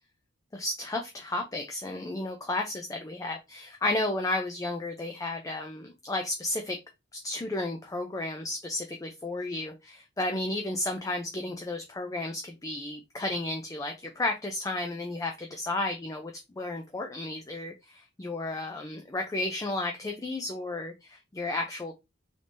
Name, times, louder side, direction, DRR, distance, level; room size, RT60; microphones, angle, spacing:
voice 1, 0.5-6.8 7.2-22.0, left 2 dB, 15° left, 3 dB, 0.4 m, -33 dB
3.3 x 3.3 x 2.6 m, 0.23 s
head